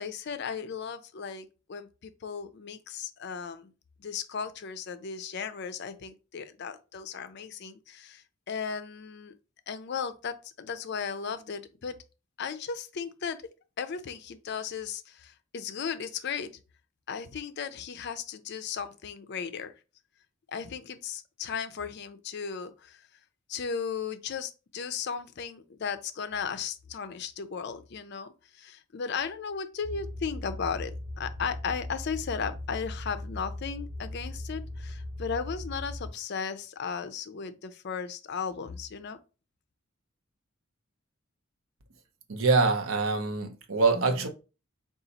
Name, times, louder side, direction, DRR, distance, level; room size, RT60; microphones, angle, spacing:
voice 1, 0.0-3.7 4.0-9.3 9.7-12.0 12.4-13.4 13.8-16.5 17.1-19.7 20.5-23.0 23.5-28.3 28.5-39.2, left 6 dB, 55° left, 0.5 m, -36 dB
sound 1, 29.8-36.1, left 1 dB, 25° left, 1.8 m, -39 dB
voice 2, 42.3-44.3, right 4 dB, 80° right, 0.7 m, -24 dB
4.0 x 2.4 x 3.9 m
head